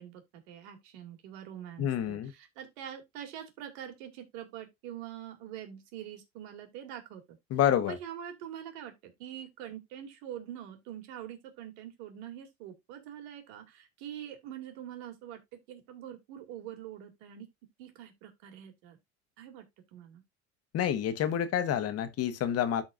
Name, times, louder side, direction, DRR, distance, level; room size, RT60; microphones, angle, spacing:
voice 1, 0.0-7.2 7.8-15.4 15.7-17.5 17.8-19.0 19.4-19.7 19.9-20.2, right 10 dB, 75° right, 2.7 m, -44 dB
voice 2, 1.8-2.3 7.5-8.0 20.7-22.8, left 10 dB, 45° left, 1.4 m, -28 dB
13.0 x 4.4 x 2.5 m
supercardioid pair, 110°, 32 cm